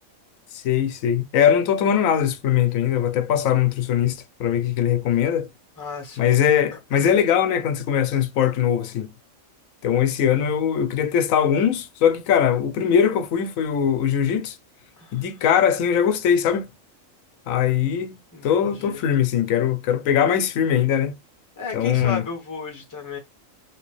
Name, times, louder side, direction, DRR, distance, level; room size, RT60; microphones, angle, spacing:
voice 1, 0.5-5.5 6.2-9.1 9.8-14.6 15.1-16.7 17.5-18.2 18.4-21.1 21.7-22.2, left 9 dB, 85° left, 1.0 m, -21 dB
voice 2, 5.8-6.4 6.7-7.2 15.0-15.3 18.3-19.0 21.6-23.2, left 4 dB, 15° left, 0.8 m, -34 dB
3.1 x 2.9 x 3.0 m
omnidirectional pair, 1.4 m